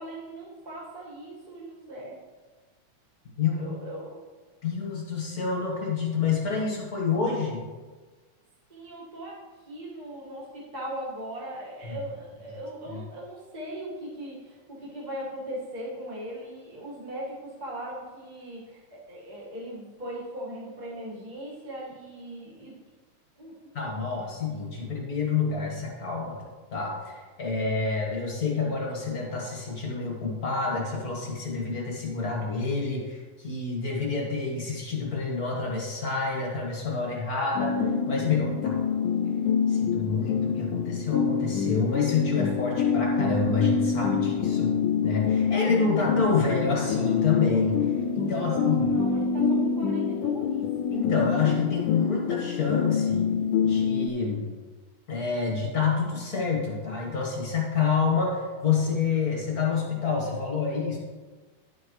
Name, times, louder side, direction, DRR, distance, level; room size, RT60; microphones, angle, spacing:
voice 1, 0.0-2.2 3.5-4.2 8.7-9.4 9.6-22.8 23.4-23.5 48.3-50.7, right 1 dB, 20° right, -6 dB, 1.1 m, -39 dB
voice 2, 3.4-3.7 4.6-7.6 23.7-26.4 26.7-37.8 38.1-38.8 39.7-44.8 45.0-48.9 50.9-53.3 53.6-54.5 55.1-61.0, left 4 dB, 40° left, -2 dB, 1.5 m, -28 dB
sound 1, 37.6-54.1, left 6 dB, 85° left, 2.0 m, -26 dB
11.0 x 7.6 x 3.2 m, 1.3 s
omnidirectional pair, 3.4 m